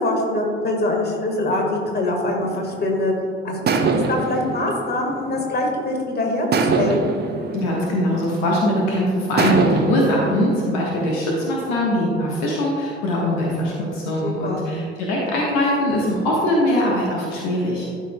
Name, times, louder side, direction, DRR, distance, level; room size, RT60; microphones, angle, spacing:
voice 1, 0.0-3.1 3.4-3.7 4.1-7.0 14.2-14.7, left 2 dB, 30° left, 1 dB, 1.6 m, -23 dB
sound 1, 2.4-3.1 3.7-5.9 6.5-8.8 9.4-11.6, right 4 dB, 30° right, 0.8 m, -24 dB
voice 2, 7.5-17.9, left 1 dB, 60° left, -3 dB, 1.3 m, -21 dB
12.5 x 5.1 x 2.2 m, 2.4 s
figure-of-eight pair, 50°, 32 cm